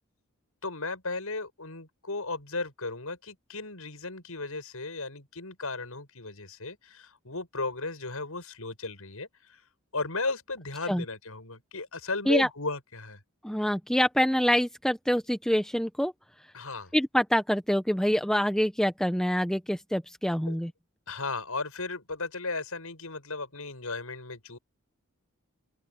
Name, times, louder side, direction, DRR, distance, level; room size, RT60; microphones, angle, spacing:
voice 1, 0.6-9.6 9.9-13.2 16.5-16.9 20.5-20.6 21.1-24.6, left 3 dB, 75° left, 6.4 m, -35 dB
voice 2, 13.4-16.1 16.9-20.7, equal, ahead, 0.8 m, -26 dB
open air
head